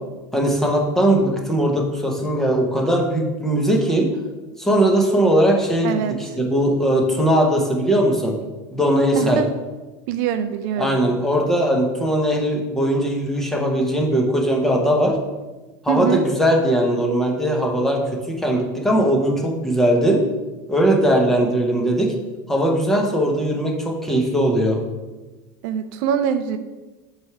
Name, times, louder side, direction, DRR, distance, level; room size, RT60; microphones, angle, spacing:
voice 1, 0.3-4.1 4.6-8.3 8.7-9.4 10.8-15.2 15.8-18.0 18.3-20.2 20.7-22.1 22.5-24.8, right 1 dB, 5° left, 0 dB, 0.8 m, -19 dB
voice 2, 5.8-6.2 9.1-9.5 10.1-11.0 15.9-16.2 25.6-26.6, right 8 dB, 55° right, 10 dB, 0.4 m, -23 dB
7.7 x 3.3 x 5.8 m, 1.2 s
cardioid pair, 170°, 12 cm